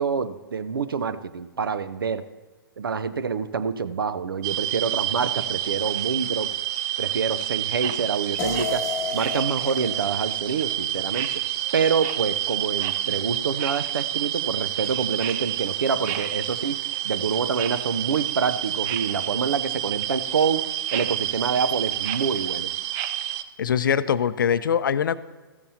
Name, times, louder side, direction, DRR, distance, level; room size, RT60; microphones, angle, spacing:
voice 1, 0.0-2.3 2.8-6.5 7.0-8.8 9.1-11.4 11.7-20.7 20.9-22.7, right 5 dB, 65° right, 13 dB, 0.7 m, -26 dB
sound 1, 4.4-23.4, right 13 dB, 25° right, 0.5 m, -28 dB
sound 2, 8.4-11.5, left 7 dB, 20° left, 1.0 m, -34 dB
voice 2, 23.6-25.2, left 8 dB, 60° left, 15 dB, 0.5 m, -22 dB
14.5 x 13.5 x 2.8 m, 1.3 s
figure-of-eight pair, 120°, 12 cm